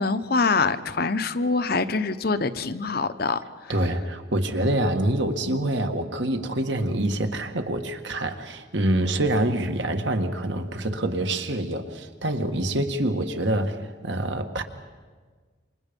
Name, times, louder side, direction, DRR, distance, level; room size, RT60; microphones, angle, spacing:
voice 1, 0.0-3.4, left 4 dB, 50° left, 11 dB, 0.9 m, -24 dB
voice 2, 3.7-13.8 14.0-14.6, right 1 dB, 65° right, 6 dB, 1.8 m, -26 dB
28.0 x 26.5 x 5.4 m, 1.5 s
head